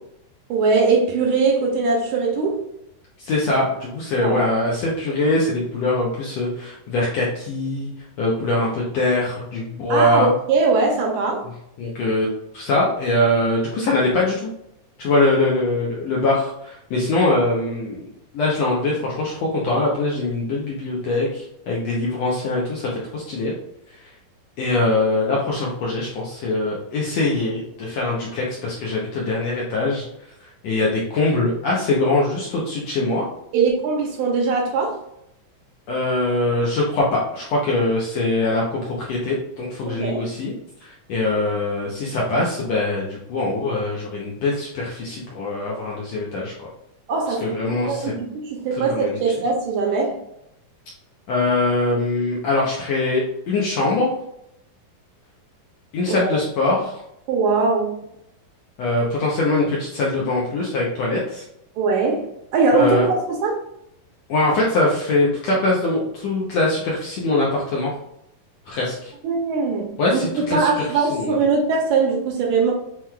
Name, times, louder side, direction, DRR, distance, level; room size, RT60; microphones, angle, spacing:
voice 1, 0.5-2.6 4.2-4.5 9.9-11.5 33.5-35.0 39.9-40.3 47.1-50.2 56.1-56.4 57.3-57.9 61.8-63.5 69.2-72.7, right 4 dB, 80° right, 1.9 m, -21 dB
voice 2, 3.2-7.9 8.2-10.3 11.8-12.3 12.5-14.5 15.0-18.1 18.3-23.5 24.6-30.1 30.6-33.2 35.9-40.5 40.8-46.5 47.4-48.1 48.7-49.2 51.3-54.1 55.9-57.0 58.8-61.4 62.7-63.1 64.3-67.9 68.7-69.1 70.0-70.7 71.1-71.3, left 2 dB, 75° left, 1.5 m, -22 dB
7.3 x 3.0 x 2.3 m
omnidirectional pair, 3.8 m